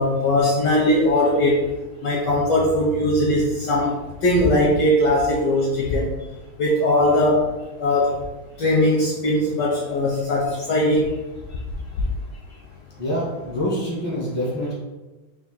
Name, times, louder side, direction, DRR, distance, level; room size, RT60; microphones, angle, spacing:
voice 1, 0.0-1.6 2.0-3.9 4.2-6.1 6.6-7.4 7.8-8.1 8.6-11.1, left 1 dB, 75° left, -3 dB, 1.0 m, -19 dB
voice 2, 13.0-14.7, equal, 10° right, -6 dB, 0.6 m, -26 dB
3.6 x 2.5 x 3.9 m, 1.1 s
omnidirectional pair, 2.4 m